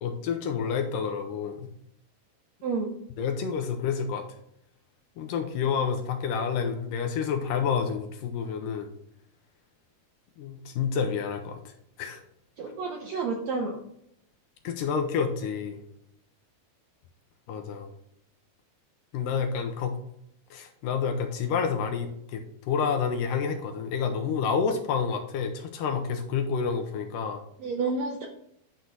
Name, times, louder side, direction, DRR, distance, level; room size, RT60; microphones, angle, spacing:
voice 1, 0.0-1.7 3.2-4.3 5.2-8.9 10.4-11.7 12.0-12.2 14.6-15.8 17.5-17.9 19.1-20.0 20.5-22.4 22.7-27.4, left 6 dB, 75° left, 5 dB, 2.2 m, -29 dB
voice 2, 2.6-2.9 12.6-13.8 27.6-28.3, right 4 dB, 75° right, 2 dB, 1.6 m, -30 dB
9.4 x 4.3 x 3.9 m, 0.74 s
omnidirectional pair, 4.2 m